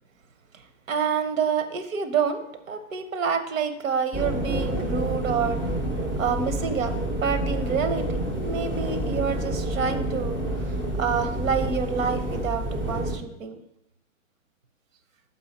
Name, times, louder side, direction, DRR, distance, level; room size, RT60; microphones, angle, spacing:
voice 1, 0.9-2.4 2.7-5.6 6.2-6.9 7.2-13.6, right 6 dB, 85° right, 9 dB, 0.9 m, -28 dB
sound 1, 4.1-13.2, right 1 dB, 10° right, 0.5 m, -28 dB
5.7 x 5.6 x 4.2 m, 0.85 s
hypercardioid pair, 155°, 39 cm